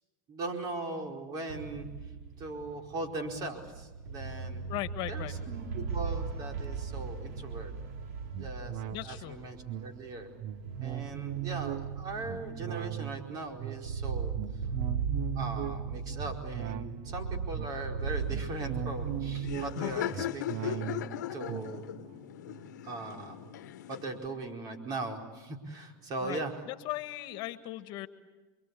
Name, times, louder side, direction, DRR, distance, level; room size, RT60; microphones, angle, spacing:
voice 1, 0.3-1.9 2.4-4.6 5.1-7.7 8.4-10.3 10.8-14.3 15.3-21.9 22.8-23.4 23.9-26.6, right 2 dB, 45° right, 3 dB, 4.8 m, -39 dB
sound 1, 1.5-19.8, right 5 dB, 75° right, 3.2 m, -38 dB
voice 2, 4.7-5.3 8.9-9.4 26.2-26.4 26.7-28.1, left 16 dB, 55° left, 11 dB, 1.5 m, -37 dB
sound 2, 8.3-24.0 24.5-24.6, right 13 dB, 60° right, 1.1 m, -40 dB
Laughter, 18.0-24.3, left 13 dB, 85° left, 1.1 m, -39 dB
29.0 x 23.5 x 8.5 m, 1.2 s
supercardioid pair, 110°, 9 cm